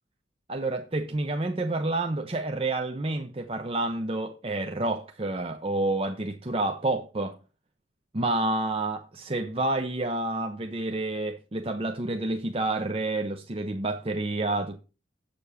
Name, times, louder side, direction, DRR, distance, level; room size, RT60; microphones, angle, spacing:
voice 1, 0.5-7.4 8.1-14.8, right 2 dB, 30° right, 0.7 m, -29 dB
7.7 x 6.9 x 6.9 m
head